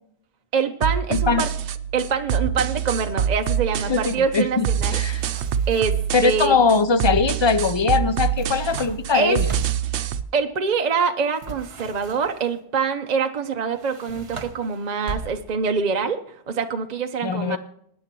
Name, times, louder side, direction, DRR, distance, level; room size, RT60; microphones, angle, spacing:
voice 1, 0.5-1.5 1.9-5.3 5.7-6.6 9.1-9.4 10.3-17.6, right 5 dB, 45° right, 6 dB, 0.7 m, -25 dB
sound 1, 0.8-10.2, right 8 dB, 85° right, 0.9 m, -26 dB
voice 2, 1.1-1.4 3.9-5.2 6.1-9.4 17.2-17.6, left 4 dB, 35° left, 12 dB, 0.5 m, -21 dB
sound 2, 4.9-6.1 8.1-10.0 11.4-12.5 13.7-15.7, right 4 dB, 65° right, 1.3 m, -38 dB
20.5 x 9.7 x 3.0 m, 0.70 s
omnidirectional pair, 1.1 m